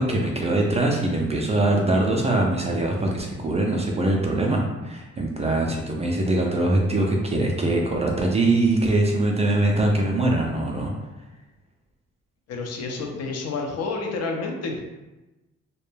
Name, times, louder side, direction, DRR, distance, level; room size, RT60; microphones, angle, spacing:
voice 1, 0.0-10.9, right 2 dB, 20° right, 0 dB, 0.3 m, -22 dB
voice 2, 12.5-14.8, left 3 dB, 55° left, 1 dB, 0.5 m, -29 dB
2.2 x 2.1 x 3.1 m, 1.1 s
cardioid pair, 90°, 30 cm